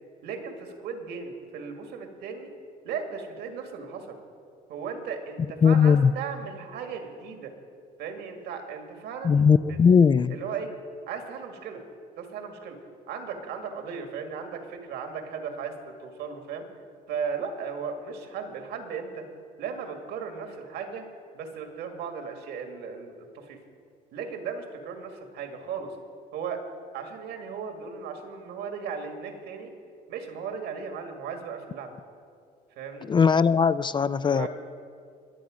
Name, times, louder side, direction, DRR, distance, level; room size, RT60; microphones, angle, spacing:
voice 1, 0.2-2.5 2.8-4.2 4.7-7.5 8.0-9.8 10.3-10.7 11.1-11.8 12.2-12.8 13.1-16.7 17.1-19.3 19.6-21.1 21.3-23.6 24.1-26.0 26.3-26.6 26.9-29.7 30.1-32.0 32.8-33.1 34.2-34.5, right 6 dB, 80° right, 4 dB, 2.0 m, -36 dB
voice 2, 5.6-6.1 9.2-10.4 33.1-34.5, left 6 dB, 25° left, 16 dB, 0.3 m, -19 dB
22.5 x 8.3 x 5.0 m, 2.4 s
cardioid pair, 110°, 17 cm